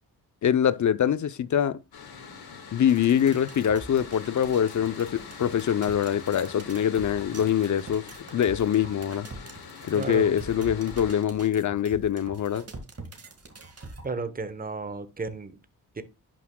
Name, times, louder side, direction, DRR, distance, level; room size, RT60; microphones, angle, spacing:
voice 1, 0.4-1.8 2.7-8.1 8.3-9.3 9.9-12.6, left 9 dB, 50° left, 0.6 m, -24 dB
Mechanical fan, 1.9-11.2, left 6 dB, 70° left, 1.5 m, -44 dB
sound 1, 2.8-14.0, right 2 dB, 40° right, 1.8 m, -45 dB
voice 2, 9.9-10.3 10.6-10.7 14.0-15.6 15.9-16.0, right 4 dB, 25° right, 1.0 m, -33 dB
11.0 x 6.0 x 2.2 m
cardioid pair, 90°, 38 cm